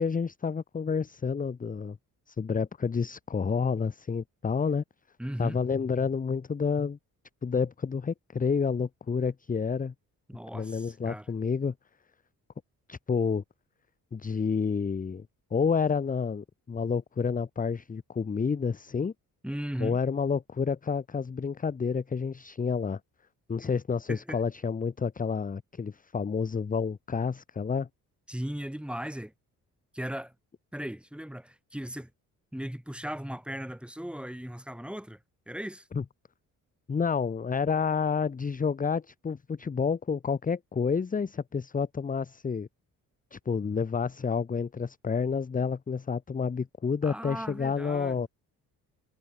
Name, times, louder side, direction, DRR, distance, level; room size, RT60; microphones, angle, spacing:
voice 1, 0.0-2.0 2.3-4.8 5.4-7.0 7.4-9.9 10.5-11.7 12.9-13.4 14.1-15.3 15.5-19.1 19.8-23.0 23.5-27.9 35.9-36.0 36.9-42.7 43.3-48.3, left 5 dB, 25° left, 0.8 m, -29 dB
voice 2, 5.2-5.6 10.3-11.3 19.4-20.0 23.6-23.7 24.1-24.4 28.3-29.3 29.9-30.3 30.7-32.1 32.5-35.2 35.5-35.9 47.0-48.3, equal, 5° right, 3.5 m, -37 dB
cardioid pair, 85°, 35 cm